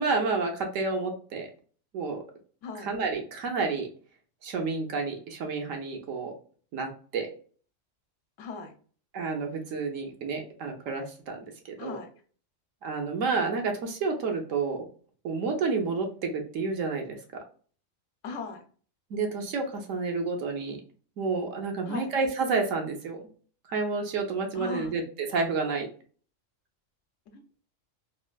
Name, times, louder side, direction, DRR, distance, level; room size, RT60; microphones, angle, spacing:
voice 1, 0.0-1.5 1.9-2.2 2.8-3.9 4.4-6.3 6.7-7.3 9.1-11.4 11.7-12.0 12.8-14.9 15.2-17.2 19.1-20.8 21.2-23.2 23.7-25.9, right 4 dB, 80° right, 3 dB, 1.1 m, -30 dB
voice 2, 2.6-2.9 8.4-8.7 11.8-12.1 18.2-18.6 21.9-22.1 24.5-25.0 27.3-27.4, left 4 dB, 75° left, 6 dB, 0.9 m, -38 dB
3.2 x 2.5 x 2.2 m, 0.43 s
omnidirectional pair, 1.3 m